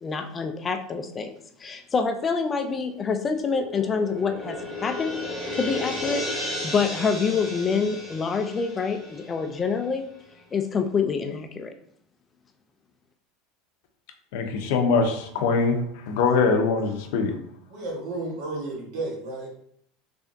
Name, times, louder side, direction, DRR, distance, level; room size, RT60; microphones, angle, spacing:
voice 1, 0.0-1.3 1.6-5.2 5.5-10.1 10.5-11.7, left 5 dB, 25° left, 7 dB, 0.3 m, -26 dB
sound 1, 3.4-9.9, left 1 dB, 5° right, 1.3 m, -34 dB
voice 2, 14.3-17.3, left 4 dB, 75° left, 5 dB, 0.6 m, -23 dB
voice 3, 17.7-19.5, right 2 dB, 65° right, -1 dB, 1.2 m, -32 dB
3.6 x 3.3 x 2.6 m, 0.66 s
supercardioid pair, 140°, 0 cm